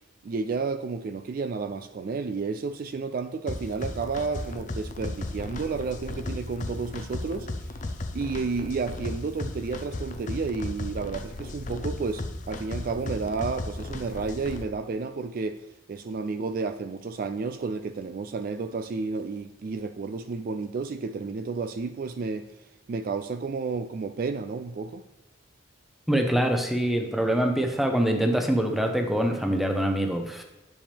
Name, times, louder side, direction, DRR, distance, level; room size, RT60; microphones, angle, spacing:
voice 1, 0.2-7.5 8.1-22.5 22.9-25.0, right 4 dB, 45° right, 0.3 m, -31 dB
sound 1, 3.5-14.6, left 2 dB, 40° left, 0.6 m, -35 dB
voice 2, 26.1-30.4, right 1 dB, ahead, 0.8 m, -24 dB
10.0 x 7.0 x 3.5 m
head